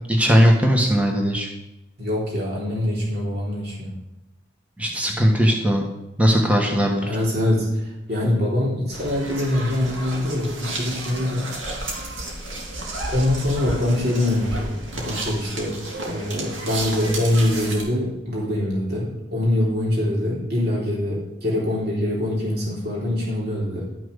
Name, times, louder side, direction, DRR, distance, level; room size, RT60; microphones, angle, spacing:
voice 1, 0.1-1.5 4.8-5.8 6.2-7.1, equal, 5° right, 0 dB, 1.4 m, -18 dB
voice 2, 2.0-4.0 7.1-11.5 13.1-23.9, left 1 dB, 55° right, -5 dB, 3.6 m, -24 dB
sound 1, 8.9-17.8, right 2 dB, 85° right, 2.8 m, -32 dB
12.5 x 6.1 x 6.5 m, 0.93 s
head